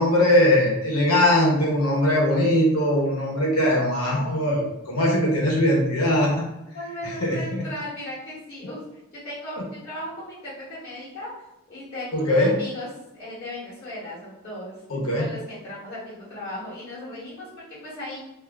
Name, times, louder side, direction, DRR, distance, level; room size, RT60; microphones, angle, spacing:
voice 1, 0.0-6.5 7.2-7.6 12.1-12.5 14.9-15.3, left 1 dB, 75° left, -3 dB, 1.1 m, -21 dB
voice 2, 6.7-8.8 9.2-12.9 13.1-14.8 15.2-18.2, left 1 dB, 45° left, -11 dB, 1.2 m, -37 dB
2.6 x 2.5 x 3.3 m, 0.96 s
head